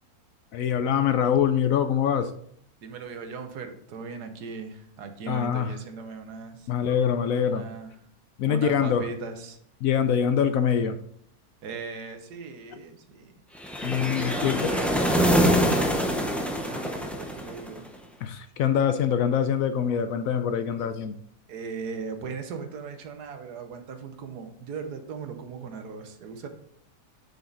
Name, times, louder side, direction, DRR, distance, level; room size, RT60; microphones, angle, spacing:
voice 1, 0.5-2.3 5.3-5.7 6.7-7.7 8.4-9.1 9.8-11.0 13.8-14.7 18.2-21.2, left 8 dB, 70° left, 10 dB, 0.9 m, -24 dB
voice 2, 2.8-6.7 7.5-7.9 8.4-9.6 11.6-13.4 14.2-17.8 21.5-26.5, right 5 dB, 90° right, 7 dB, 1.5 m, -38 dB
sound 1, 13.6-17.9, equal, ahead, 0.4 m, -24 dB
7.1 x 5.7 x 3.9 m, 0.67 s
omnidirectional pair, 1.7 m